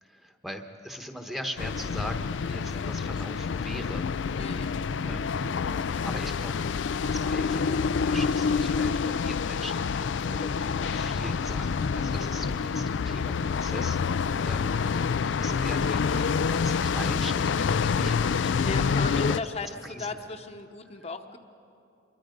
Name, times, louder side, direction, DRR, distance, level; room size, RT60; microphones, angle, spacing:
voice 1, 0.0-4.1 5.0-5.5 5.8-6.5 7.1-14.8 15.2-19.0 19.3-19.4 19.8-20.1, equal, ahead, 5 dB, 1.0 m, -40 dB
sound 1, 1.6-19.4, left 5 dB, 80° left, 0.4 m, -27 dB
voice 2, 4.4-4.7 18.6-21.4, left 3 dB, 35° left, 4 dB, 0.9 m, -35 dB
26.0 x 22.5 x 5.2 m, 2.6 s
head